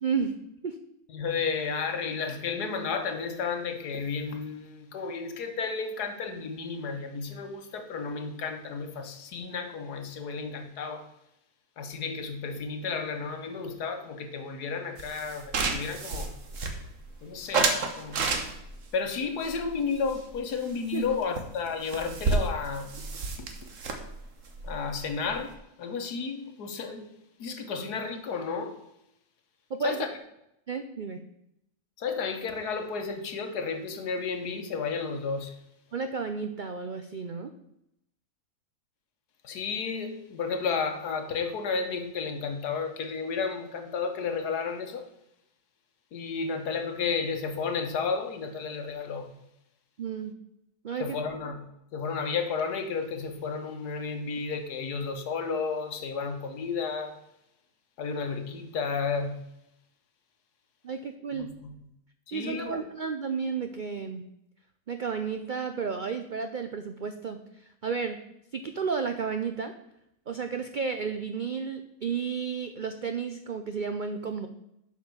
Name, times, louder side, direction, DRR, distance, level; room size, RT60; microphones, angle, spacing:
voice 1, 0.0-0.4 0.6-0.8 20.9-21.0 29.7-30.0 30.7-31.2 35.9-37.5 50.0-50.3 50.8-51.2 60.8-61.5 62.3-64.2 64.9-68.2 68.5-69.7 70.3-74.5, right 5 dB, 80° right, 7 dB, 0.4 m, -32 dB
voice 2, 1.1-11.1 11.8-16.3 17.2-18.2 18.9-23.1 23.4-23.5 24.6-27.1 27.4-28.8 29.8-30.1 32.0-35.5 39.4-45.0 46.1-49.3 51.0-57.1 58.0-59.4 61.3-61.8 62.3-62.8, left 5 dB, 90° left, 6 dB, 1.7 m, -32 dB
sound 1, 15.0-17.1 17.5-18.8 19.4-20.7 20.9-21.1 21.4-21.5 21.7-25.5, right 4 dB, 55° right, 1.5 m, -31 dB
7.6 x 5.3 x 6.8 m, 0.82 s
omnidirectional pair, 1.6 m